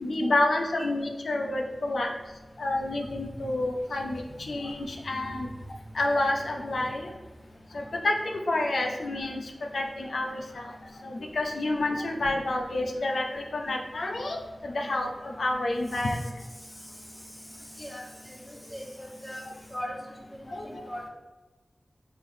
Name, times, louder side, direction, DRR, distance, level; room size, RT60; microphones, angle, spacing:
voice 1, 0.0-2.1 2.6-4.2 4.5-5.5 6.0-7.1 7.7-8.1 8.5-9.4 9.7-10.6 11.0-16.2 20.5-20.7, left 2 dB, 85° left, 1 dB, 0.4 m, -29 dB
voice 2, 17.8-19.4 19.7-19.9 20.3-21.1, equal, 10° left, -2 dB, 1.1 m, -39 dB
3.6 x 3.3 x 2.6 m, 1.3 s
cardioid pair, 50°, 0 cm